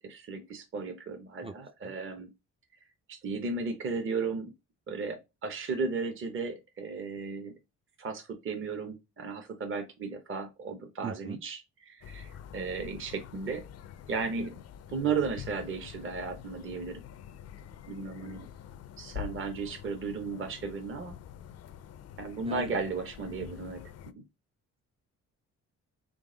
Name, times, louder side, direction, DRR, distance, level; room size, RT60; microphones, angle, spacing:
voice 1, 0.0-2.3 3.1-4.5 4.9-7.5 8.0-13.6 14.1-14.6 14.9-17.0 17.9-18.5 19.0-21.2 22.2-23.8 24.1-24.2, right 4 dB, 45° right, 0.9 m, -35 dB
voice 2, 11.0-11.4 22.5-22.7, right 6 dB, 20° right, 0.4 m, -40 dB
sound 1, 12.0-24.1, left 9 dB, 55° left, 0.5 m, -46 dB
3.8 x 3.4 x 3.8 m
cardioid pair, 90°, 30 cm